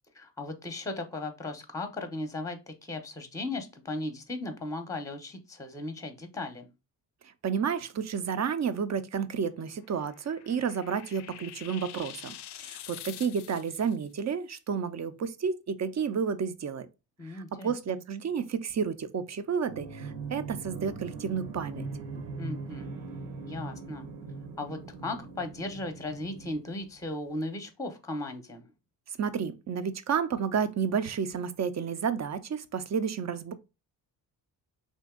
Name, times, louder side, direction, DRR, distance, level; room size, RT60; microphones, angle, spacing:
voice 1, 0.1-6.7 17.2-18.0 22.4-22.9 23.5-24.1 24.6-28.7, left 2 dB, 5° left, 0.7 m, -37 dB
voice 2, 7.4-16.9 17.3-21.8 29.2-33.5, right 6 dB, 40° right, 0.5 m, -31 dB
sound 1, 9.8-14.0, left 12 dB, 60° left, 0.5 m, -46 dB
sound 2, 19.6-27.2, right 4 dB, 75° right, 0.9 m, -41 dB
2.9 x 2.6 x 3.6 m
supercardioid pair, 55°, 45 cm